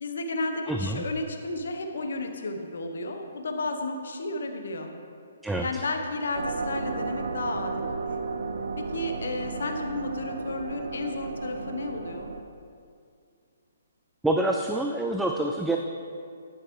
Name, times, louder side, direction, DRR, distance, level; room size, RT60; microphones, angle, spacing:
voice 1, 0.0-4.9 5.6-8.0 8.8-12.3, left 2 dB, 70° left, 4 dB, 0.8 m, -32 dB
voice 2, 0.7-1.0 5.4-5.8 14.2-15.8, right 1 dB, 5° right, 2 dB, 0.3 m, -27 dB
sound 1, 6.3-12.4, right 4 dB, 70° right, 0.5 m, -33 dB
9.4 x 6.4 x 3.1 m, 2.4 s
figure-of-eight pair, 135°, 0 cm